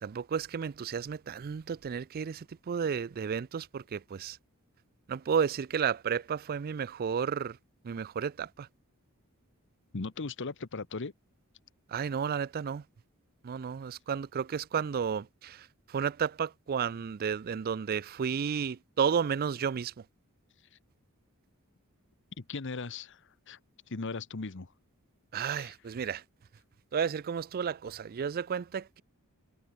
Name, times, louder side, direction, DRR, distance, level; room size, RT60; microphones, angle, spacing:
voice 1, 0.0-4.4 5.1-7.6 7.8-8.7 11.9-12.8 13.4-20.0 25.3-26.2 26.9-29.0, right 7 dB, 45° right, 0.4 m, -32 dB
voice 2, 9.9-11.1 22.4-23.6 23.9-24.7 25.5-25.7, left 3 dB, 55° left, 1.0 m, -38 dB
head